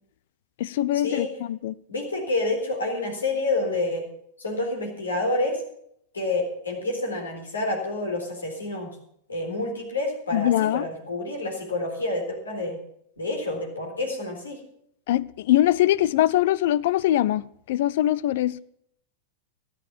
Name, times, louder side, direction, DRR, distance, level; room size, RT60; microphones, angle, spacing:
voice 1, 0.6-1.7 10.3-10.8 15.1-18.6, left 13 dB, 55° left, 0.4 m, -22 dB
voice 2, 1.9-4.1 4.4-5.6 6.1-8.9 9.3-12.8 13.2-14.6, left 2 dB, 75° left, 4.0 m, -28 dB
13.5 x 10.5 x 7.1 m
figure-of-eight pair, 90°, 0 cm